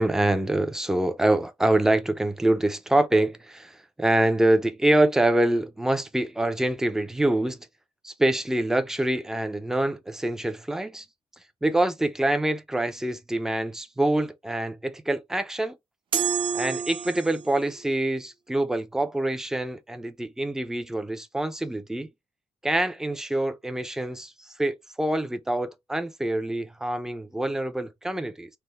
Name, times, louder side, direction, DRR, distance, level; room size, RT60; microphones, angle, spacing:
voice 1, 0.0-7.7 8.0-11.1 11.6-15.8 16.5-22.1 22.6-28.5, right 1 dB, 5° right, 0.4 m, -25 dB
sound 1, 16.1-17.6, right 7 dB, 55° right, 0.7 m, -28 dB
3.3 x 2.1 x 2.8 m
wide cardioid pair, 160°, 11 cm